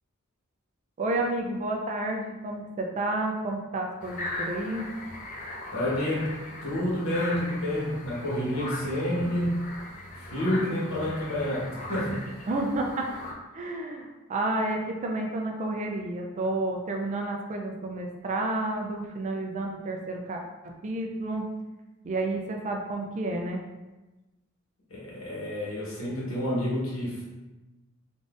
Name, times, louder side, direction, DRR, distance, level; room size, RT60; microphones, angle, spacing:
voice 1, 1.0-4.9 12.5-13.1 13.5-21.5 22.0-23.6, right 2 dB, 35° right, 1 dB, 0.3 m, -30 dB
sound 1, 4.0-13.3, left 2 dB, 40° left, 0.5 m, -39 dB
voice 2, 5.7-6.3 6.6-9.6 10.2-12.3 24.9-27.2, left 1 dB, 80° left, -6 dB, 1.2 m, -29 dB
3.8 x 2.5 x 2.4 m, 1.1 s
head